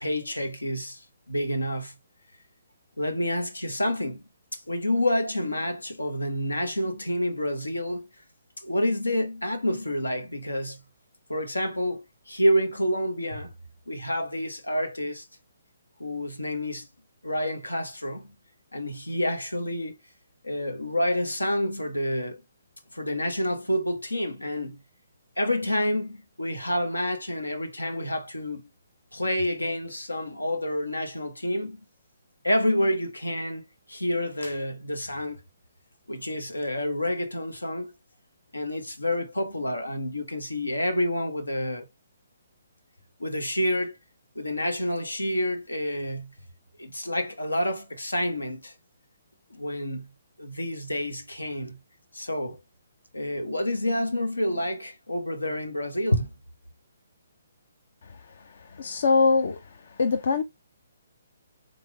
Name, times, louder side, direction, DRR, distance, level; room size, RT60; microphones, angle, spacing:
voice 1, 0.0-1.9 3.0-4.2 4.5-8.1 8.6-10.8 11.3-13.5 13.9-15.3 16.0-16.9 17.2-18.3 18.7-20.0 20.4-22.4 22.9-24.8 25.4-28.7 29.1-31.8 32.4-35.4 36.1-37.9 38.5-41.9 43.2-44.0 44.3-46.3 46.8-48.7 49.5-50.1 50.4-51.8 52.1-52.6 53.1-56.3, left 1 dB, 85° left, 0.9 m, -28 dB
voice 2, 58.8-59.6 60.0-60.4, left 4 dB, 60° left, 0.6 m, -22 dB
3.8 x 3.4 x 3.3 m
figure-of-eight pair, 135°, 0 cm